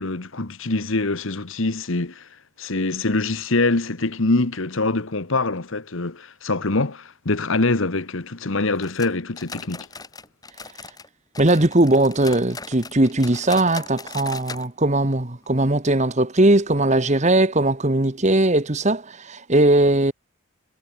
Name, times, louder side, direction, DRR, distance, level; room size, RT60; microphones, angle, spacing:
voice 1, 0.0-2.3 2.6-9.9, left 2 dB, 65° left, 1.3 m, -24 dB
sound 1, 8.8-11.1 11.3-14.7 14.9-15.0 15.4-15.5 16.1-16.2, left 4 dB, 15° left, 2.8 m, -39 dB
voice 2, 11.4-20.1, right 1 dB, 30° right, 1.4 m, -19 dB
head